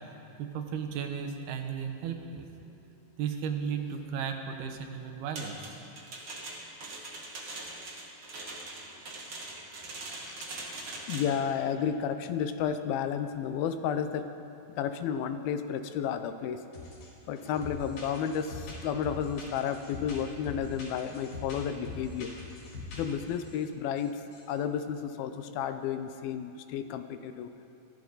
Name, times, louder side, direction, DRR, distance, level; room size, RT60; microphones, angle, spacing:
voice 1, 0.4-2.5 3.2-5.7, right 7 dB, 85° right, 5 dB, 3.0 m, -35 dB
sound 1, 5.4-11.4, right 2 dB, 40° right, 2.1 m, -42 dB
voice 2, 11.1-14.3 14.8-16.6 17.3-22.3 22.9-24.2 24.5-27.5, left 8 dB, 80° left, 9 dB, 2.5 m, -32 dB
sound 2, 16.7-17.1 17.4-23.6 24.0-24.1 24.3-24.5, left 2 dB, 65° left, 5.5 m, -43 dB
20.5 x 15.0 x 4.0 m, 2.6 s
omnidirectional pair, 4.5 m